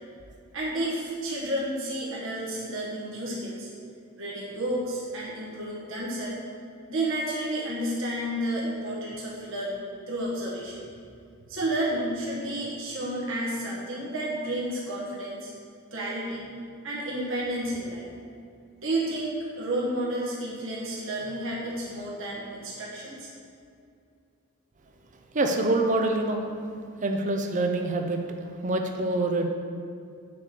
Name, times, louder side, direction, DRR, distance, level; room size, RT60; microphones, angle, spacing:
voice 1, 0.5-3.7 4.2-6.4 6.9-10.8 11.5-15.5 15.9-16.5 16.8-18.0 18.8-23.3, right 1 dB, 60° right, -5 dB, 1.5 m, -31 dB
voice 2, 25.3-26.4 27.0-28.2 28.6-29.5, right 2 dB, 35° right, 4 dB, 0.5 m, -25 dB
6.7 x 5.1 x 6.7 m, 2.4 s
head